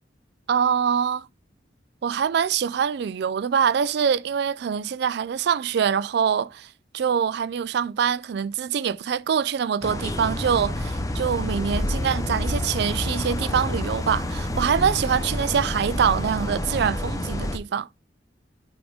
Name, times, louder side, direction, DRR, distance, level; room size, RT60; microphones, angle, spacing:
voice 1, 0.5-1.3 2.0-6.7 6.9-17.9, right 7 dB, 60° right, 0.3 m, -24 dB
sound 1, 9.8-17.6, left 1 dB, 20° left, 0.6 m, -28 dB
8.4 x 3.7 x 3.5 m
head